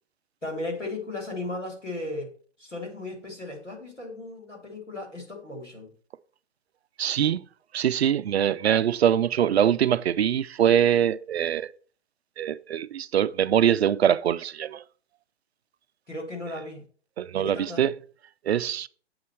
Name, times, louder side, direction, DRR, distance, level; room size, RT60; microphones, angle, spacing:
voice 1, 0.4-2.3 2.6-5.9 16.1-16.8 17.3-17.8, left 2 dB, 90° left, 3.1 m, -36 dB
voice 2, 7.0-7.5 7.7-11.7 12.4-14.8 17.2-17.9 18.5-18.9, right 9 dB, 65° right, 0.5 m, -23 dB
7.9 x 4.2 x 6.0 m
figure-of-eight pair, 120°, 35 cm